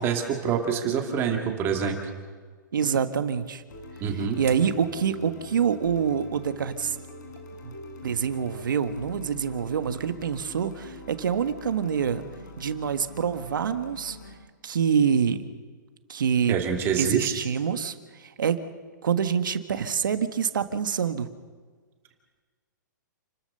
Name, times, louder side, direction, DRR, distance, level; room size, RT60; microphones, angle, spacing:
voice 1, 0.0-2.0 4.0-4.4 16.5-17.3, right 7 dB, 20° right, 3 dB, 2.3 m, -26 dB
voice 2, 2.7-3.6 4.1-7.0 7.6-7.7 8.0-12.2 12.6-14.2 14.6-15.4 16.1-16.6 17.0-18.6 19.0-21.3, right 7 dB, 80° right, 9 dB, 1.5 m, -26 dB
sound 1, 3.7-14.4, left 1 dB, 65° left, 4.9 m, -44 dB
29.5 x 13.0 x 6.8 m, 1.5 s
hypercardioid pair, 155°, 11 cm